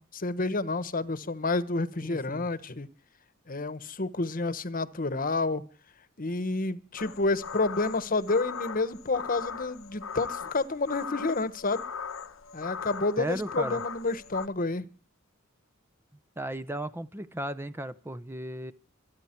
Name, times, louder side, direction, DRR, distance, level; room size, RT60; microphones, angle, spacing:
voice 1, 0.0-2.9 3.5-5.6 6.2-11.8 12.5-14.9, left 3 dB, 45° left, 15 dB, 1.2 m, -29 dB
sound 1, 7.0-14.5, left 6 dB, 85° left, 1.1 m, -39 dB
voice 2, 13.2-13.8 16.4-18.7, right 1 dB, 10° right, 13 dB, 0.6 m, -35 dB
27.0 x 9.5 x 4.5 m, 0.37 s
head